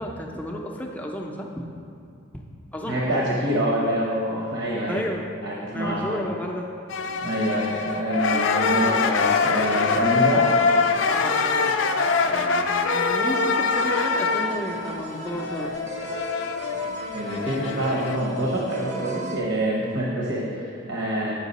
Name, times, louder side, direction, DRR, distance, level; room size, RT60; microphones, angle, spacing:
voice 1, 0.0-1.6 2.3-2.4 2.7-3.0 4.9-5.3 5.7-6.7 11.1-11.8 12.3-15.8, left 1 dB, 5° left, 0 dB, 0.5 m, -32 dB
voice 2, 2.9-5.0 5.4-6.2 7.2-10.5 17.1-21.3, right 1 dB, 70° right, -4 dB, 1.0 m, -26 dB
sound 1, 6.9-18.2, left 4 dB, 65° left, 0.4 m, -24 dB
sound 2, 13.7-19.4, right 2 dB, 35° right, 0.6 m, -36 dB
8.1 x 5.6 x 4.1 m, 2.5 s
head